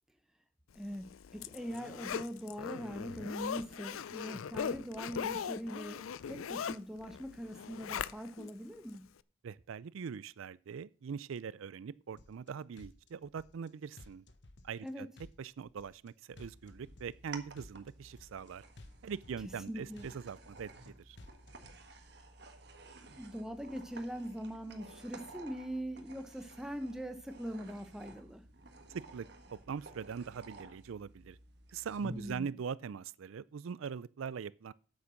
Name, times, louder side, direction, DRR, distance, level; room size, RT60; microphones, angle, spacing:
voice 1, 0.7-9.0 14.8-15.1 19.7-20.1 23.2-28.4 32.0-32.5, equal, 5° right, 1.0 m, -42 dB
Zipper (clothing), 0.9-8.5 8.9-9.0, left 7 dB, 85° left, 0.4 m, -40 dB
voice 2, 9.4-14.2 14.6-15.1 15.4-18.6 19.0-21.2 28.9-31.4 31.7-34.7, right 6 dB, 80° right, 0.4 m, -42 dB
sound 1, 12.2-12.5 12.8-13.7 14.0-14.9 15.2-16.1 16.4-17.3 17.6-18.5 18.8-19.7 20.0-20.9 21.2-21.8, left 2 dB, 60° left, 1.2 m, -56 dB
sound 2, 16.3-32.4, right 2 dB, 55° right, 1.4 m, -53 dB
8.6 x 8.2 x 6.4 m
head